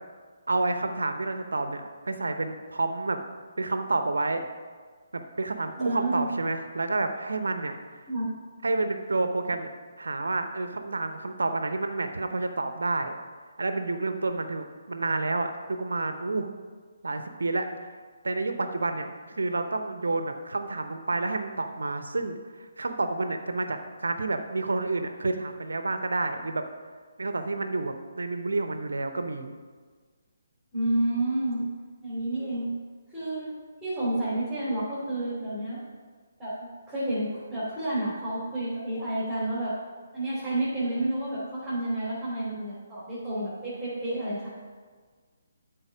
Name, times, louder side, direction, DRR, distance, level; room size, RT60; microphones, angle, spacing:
voice 1, 0.5-3.2 3.6-4.4 5.1-7.7 8.6-9.7 10.0-13.2 13.6-16.5 17.0-17.7 18.2-22.4 22.8-26.6 27.2-29.5, right 3 dB, 65° right, 7 dB, 0.8 m, -29 dB
voice 2, 5.8-6.3 8.1-8.3 30.7-31.6 32.0-32.7 33.1-33.5 33.8-35.8 36.4-36.5 36.9-39.7 40.1-44.5, right 1 dB, 5° right, -12 dB, 2.9 m, -30 dB
12.0 x 4.2 x 5.2 m, 1.5 s
figure-of-eight pair, 140°, 0 cm